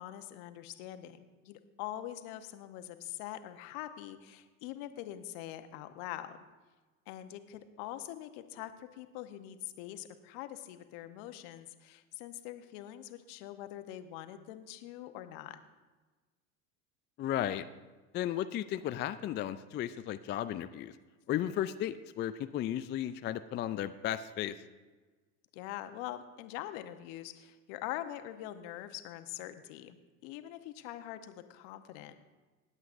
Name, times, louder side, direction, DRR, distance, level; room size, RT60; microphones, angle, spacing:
voice 1, 0.0-6.4 7.1-15.6 25.5-32.2, left 13 dB, 60° left, 9 dB, 1.0 m, -44 dB
voice 2, 17.2-17.7 18.1-20.9 21.3-24.5, left 11 dB, 25° left, 11 dB, 0.3 m, -34 dB
19.5 x 8.0 x 2.6 m, 1.3 s
hypercardioid pair, 80°, 43 cm